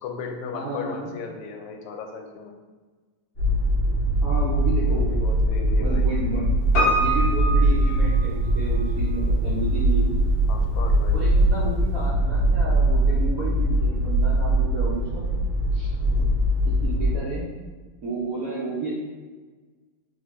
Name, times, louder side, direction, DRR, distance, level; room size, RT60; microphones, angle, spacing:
voice 1, 0.0-2.5 4.8-6.1 10.5-11.2 16.0-16.3, left 4 dB, 90° left, 3 dB, 1.5 m, -36 dB
voice 2, 0.5-1.1 4.2-5.1 5.8-6.6 7.0-10.2 11.1-15.3 15.7-15.9 16.6-17.5 18.0-19.0, right 2 dB, 70° right, -6 dB, 0.8 m, -31 dB
sound 1, 3.4-17.2, right 1 dB, 30° left, 1.5 m, -22 dB
Piano, 6.7-8.8 9.1-9.2, right 1 dB, 50° left, 1.5 m, -25 dB
3.8 x 3.6 x 3.1 m, 1.4 s
omnidirectional pair, 2.4 m